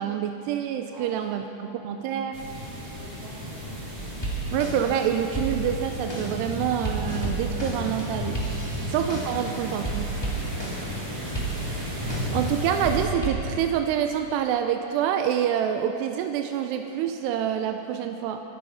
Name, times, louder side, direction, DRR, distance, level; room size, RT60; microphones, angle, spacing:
voice 1, 0.0-2.4 4.5-8.4 8.9-10.1 12.3-18.4, right 9 dB, 85° right, 6 dB, 2.7 m, -27 dB
voice 2, 0.9-1.8 2.9-3.7 8.7-8.9, equal, 40° right, -6 dB, 4.2 m, -49 dB
sound 1, 2.3-13.1, left 1 dB, 55° right, 4.8 m, -34 dB
sound 2, 4.0-5.0 5.3-9.5 9.8-11.0 11.3-12.5 12.8-13.4, right 2 dB, 10° left, 1.4 m, -32 dB
24.5 x 9.1 x 5.6 m, 2.9 s
omnidirectional pair, 4.8 m